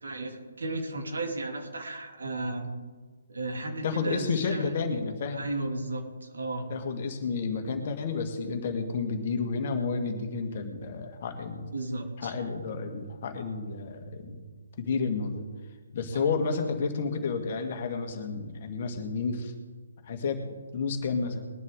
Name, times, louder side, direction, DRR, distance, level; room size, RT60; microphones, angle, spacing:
voice 1, 0.0-2.7 3.3-4.7 5.3-6.7 11.7-12.3 12.6-12.7 16.1-16.2, right 2 dB, 65° right, 2 dB, 2.9 m, -34 dB
voice 2, 3.8-5.5 6.7-11.7 12.2-14.5 14.8-15.4 15.9-19.5 20.0-21.5, left 4 dB, 40° left, 5 dB, 1.9 m, -31 dB
21.0 x 11.0 x 3.8 m, 1.4 s
figure-of-eight pair, 140°, 0 cm